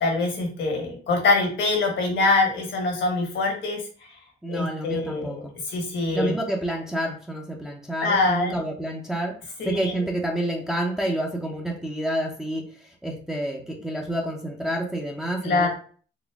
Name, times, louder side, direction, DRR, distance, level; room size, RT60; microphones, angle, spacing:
voice 1, 0.0-3.8 4.5-5.4 5.7-6.3 8.0-8.6 9.6-9.9 15.4-15.7, left 3 dB, 70° left, 1 dB, 1.5 m, -24 dB
voice 2, 4.4-5.6 6.1-15.7, right 1 dB, ahead, -1 dB, 0.7 m, -29 dB
4.0 x 2.1 x 3.5 m, 0.42 s
cardioid pair, 90°, 20 cm